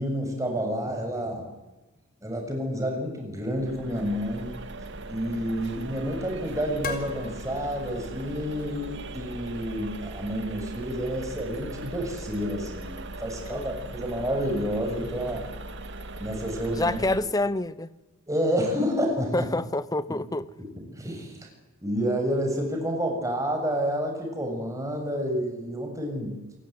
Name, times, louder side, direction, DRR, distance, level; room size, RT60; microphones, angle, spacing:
voice 1, 0.0-1.5 2.2-4.6 5.1-15.4 16.2-17.0 18.3-19.5 20.9-21.5 21.8-26.4, equal, 15° right, 2 dB, 7.1 m, -29 dB
sound 1, 3.5-17.2, right 2 dB, 55° right, 2.0 m, -39 dB
sound 2, 5.0-10.9, left 4 dB, 45° left, 4.1 m, -43 dB
voice 2, 16.8-17.9 19.3-20.5, left 2 dB, 15° left, 16 dB, 0.8 m, -27 dB
28.5 x 18.0 x 9.7 m, 1.1 s
head